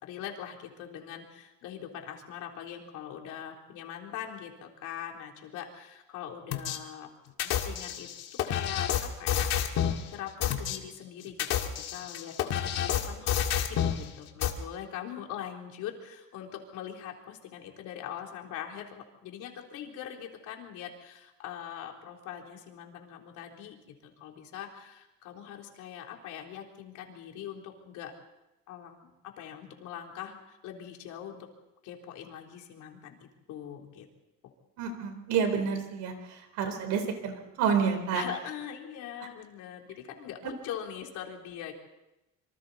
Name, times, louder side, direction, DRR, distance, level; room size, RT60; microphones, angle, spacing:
voice 1, 0.0-7.1 7.4-8.1 8.4-9.5 10.1-13.5 13.9-23.8 24.0-28.1 28.7-31.5 31.8-34.1 38.1-41.7, left 9 dB, 75° left, 2 dB, 3.5 m, -42 dB
sound 1, 6.5-6.8 7.4-10.0 10.4-10.8 11.3-14.0 14.4-14.5, left 9 dB, 60° left, 2.0 m, -29 dB
voice 2, 34.8-38.2 40.4-40.5, right 6 dB, 75° right, 7 dB, 4.0 m, -29 dB
26.5 x 25.0 x 4.1 m, 0.93 s
cardioid pair, 170°, 30 cm